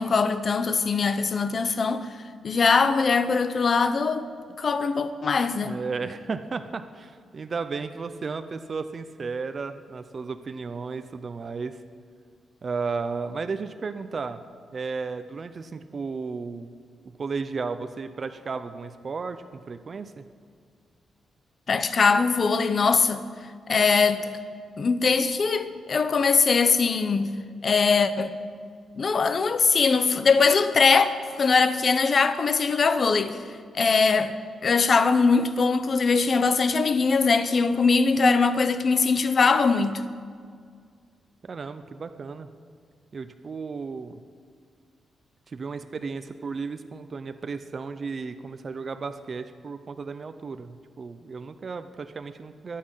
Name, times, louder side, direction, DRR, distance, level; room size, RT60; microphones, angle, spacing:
voice 1, 0.0-2.1 2.4-4.2 4.6-5.8 21.7-23.2 23.7-24.3 24.8-27.4 27.6-28.3 29.0-33.4 33.7-34.3 34.6-40.1, left 4 dB, 40° left, 0.8 m, -21 dB
voice 2, 5.6-11.8 12.6-14.4 14.7-16.7 17.2-20.2 41.4-42.5 43.1-44.2 45.5-52.8, right 4 dB, 40° right, 0.6 m, -34 dB
23.5 x 8.5 x 5.6 m
cardioid pair, 125°, 0 cm